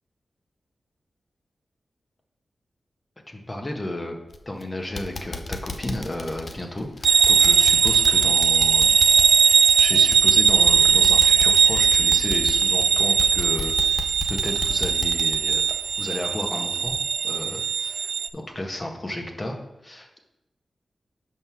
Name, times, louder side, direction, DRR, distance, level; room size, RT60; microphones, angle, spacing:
voice 1, 3.3-4.1 4.4-9.0 9.4-15.6 16.0-16.9 17.2-19.5 19.8-20.2, left 1 dB, 30° left, 2 dB, 1.5 m, -33 dB
sound 1, 4.3-4.6 5.0-16.5 16.9-17.0 17.5-17.6, left 3 dB, 55° left, 0.7 m, -35 dB
sound 2, 7.0-18.3, right 6 dB, 90° right, 0.3 m, -19 dB
5.4 x 5.4 x 6.2 m, 0.89 s
cardioid pair, 55°, 0 cm